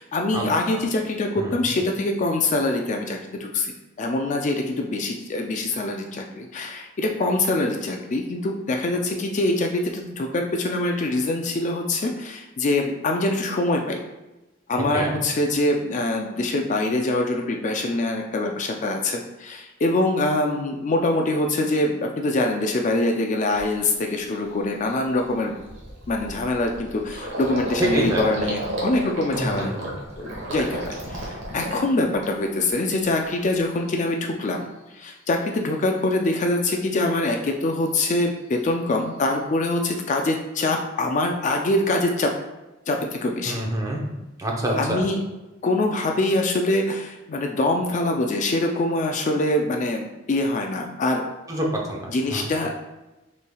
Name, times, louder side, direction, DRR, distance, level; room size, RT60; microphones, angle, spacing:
voice 1, 0.0-3.7 4.0-14.0 14.7-25.5 26.1-29.7 30.2-34.7 34.9-42.3 42.9-43.6 44.8-45.2 45.6-51.2 52.1-52.8, left 2 dB, 40° left, 2 dB, 0.4 m, -24 dB
voice 2, 14.8-15.2 27.8-28.2 29.3-30.0 43.4-44.0 44.4-45.0 51.5-52.5, right 1 dB, 20° right, -2 dB, 0.7 m, -26 dB
Gurgling, 23.0-23.1 23.5-23.8 24.2-24.3 24.6-32.6 33.0-33.6, right 1 dB, 65° right, 1.1 m, -32 dB
5.4 x 3.2 x 2.3 m, 1.0 s
head